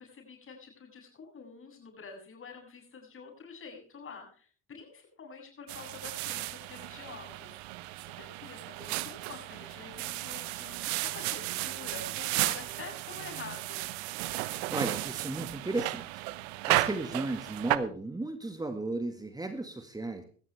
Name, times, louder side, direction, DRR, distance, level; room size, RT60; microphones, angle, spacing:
voice 1, 0.0-13.9, left 5 dB, 40° left, 3 dB, 8.0 m, -47 dB
sound 1, 5.7-17.8, right 19 dB, 75° right, 1.0 m, -34 dB
voice 2, 14.4-16.2 16.7-20.2, right 2 dB, 10° right, 7 dB, 1.8 m, -35 dB
17.0 x 14.0 x 3.4 m, 0.42 s
hypercardioid pair, 70°, 32 cm